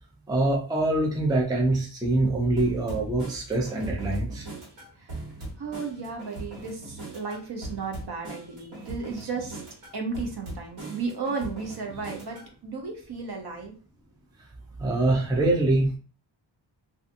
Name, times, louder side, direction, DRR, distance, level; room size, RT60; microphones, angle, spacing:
voice 1, 0.3-4.5 14.8-16.0, right 2 dB, 10° right, -1 dB, 0.4 m, -24 dB
sound 1, 2.6-12.5, right 2 dB, 85° right, 1.3 m, -40 dB
voice 2, 5.6-9.6 9.9-13.7, right 4 dB, 55° right, 2 dB, 0.7 m, -34 dB
2.6 x 2.4 x 2.4 m, 0.38 s
wide cardioid pair, 175°, 47 cm